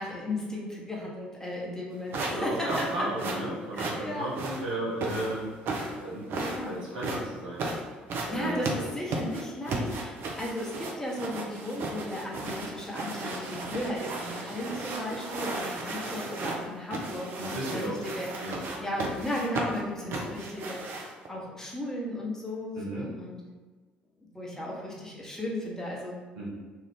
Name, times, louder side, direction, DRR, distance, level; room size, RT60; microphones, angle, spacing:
voice 1, 0.0-2.9 3.7-4.3 6.4-6.8 8.3-18.5 18.8-20.8 21.3-23.4 24.2-26.1, left 1 dB, 10° left, -4 dB, 1.0 m, -35 dB
sound 1, 2.1-21.3, right 2 dB, 55° right, 0.5 m, -35 dB
voice 2, 2.3-5.6 5.8-6.3 6.6-7.9 8.2-8.6 17.4-18.1 18.4-18.6 20.0-20.3 22.7-23.1 26.3-26.5, right 1 dB, 80° right, -6 dB, 0.8 m, -34 dB
2.8 x 2.4 x 3.5 m, 1.4 s
figure-of-eight pair, 50°, 5 cm